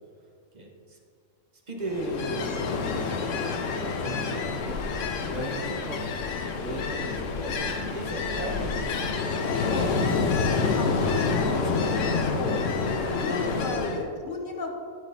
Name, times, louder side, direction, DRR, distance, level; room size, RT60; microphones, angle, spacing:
voice 1, 0.5-1.0 1.7-3.3 4.0-4.8 5.3-6.0 6.6-9.7 10.7-12.3 13.4-13.8, right 1 dB, 35° right, 0 dB, 1.1 m, -37 dB
Ocean, 1.9-14.0, left 4 dB, 70° left, 1.0 m, -28 dB
voice 2, 10.7-11.5 11.8-12.7 13.2-14.7, left 3 dB, 45° left, 2 dB, 0.8 m, -34 dB
9.7 x 8.8 x 2.7 m, 2.3 s
omnidirectional pair, 1.5 m